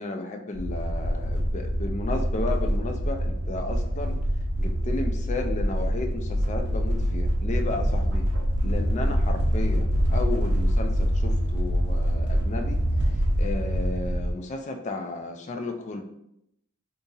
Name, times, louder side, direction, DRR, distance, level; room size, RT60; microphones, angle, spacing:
voice 1, 0.0-4.2 4.6-8.3 8.6-12.8 13.4-16.0, left 3 dB, 35° left, 4 dB, 0.4 m, -33 dB
sound 1, 0.6-14.3, equal, 55° right, 0.6 m, -25 dB
2.8 x 2.5 x 3.9 m, 0.78 s
head